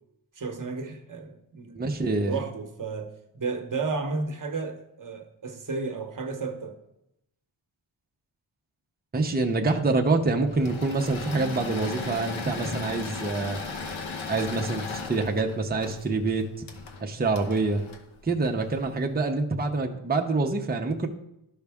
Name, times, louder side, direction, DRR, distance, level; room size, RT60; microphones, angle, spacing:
voice 1, 0.3-1.8 2.1-6.8, right 4 dB, 40° right, 1.1 m, -33 dB
voice 2, 1.7-2.4 9.1-13.6 14.3-16.6 17.0-17.8 18.2-21.1, right 3 dB, 20° right, 0.7 m, -26 dB
Engine / Mechanisms, 10.5-18.9, left 4 dB, 70° left, 1.1 m, -36 dB
12.0 x 5.5 x 3.5 m
wide cardioid pair, 150°, 49 cm